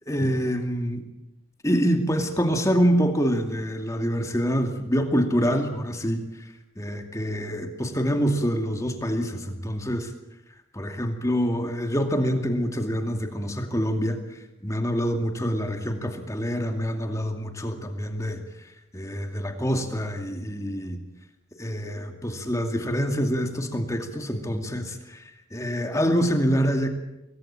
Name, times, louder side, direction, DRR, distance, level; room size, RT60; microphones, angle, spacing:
voice 1, 0.1-1.0 1.6-6.3 6.8-10.1 10.7-14.2 14.6-18.4 18.9-21.0 21.6-25.2 25.5-26.9, equal, 15° left, 5 dB, 2.4 m, -26 dB
25.5 x 19.5 x 8.9 m, 0.92 s
head